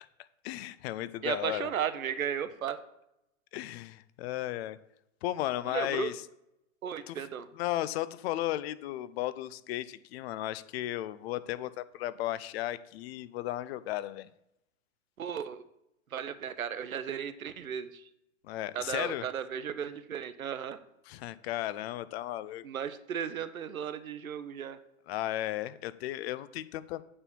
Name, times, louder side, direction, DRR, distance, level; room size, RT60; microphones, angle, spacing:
voice 1, 0.4-1.7 3.5-4.8 5.2-6.2 7.1-7.3 7.5-14.3 18.4-19.2 21.1-22.6 25.1-27.0, left 14 dB, 50° left, 16 dB, 0.6 m, -35 dB
voice 2, 1.2-2.8 5.6-6.1 6.8-7.5 15.2-15.6 16.1-18.1 18.7-20.8 22.6-24.8, right 8 dB, 85° right, 12 dB, 0.9 m, -35 dB
8.7 x 4.4 x 7.2 m, 0.84 s
hypercardioid pair, 105°, 41 cm